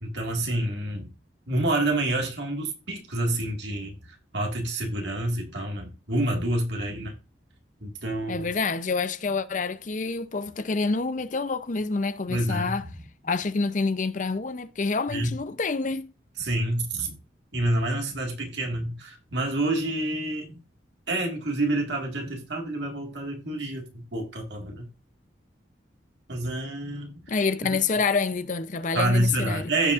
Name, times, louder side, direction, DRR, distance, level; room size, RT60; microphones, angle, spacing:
voice 1, 0.0-1.1 1.5-3.9 4.3-7.1 7.8-8.5 12.3-12.8 15.1-15.3 16.4-17.2 17.5-20.6 21.1-24.8 26.3-27.2 27.6-27.8 28.9-29.9, right 1 dB, 70° right, 1.9 m, -28 dB
voice 2, 8.3-12.8 13.2-16.1 27.3-29.7, left 4 dB, 40° left, 0.6 m, -27 dB
15.5 x 5.2 x 2.5 m
head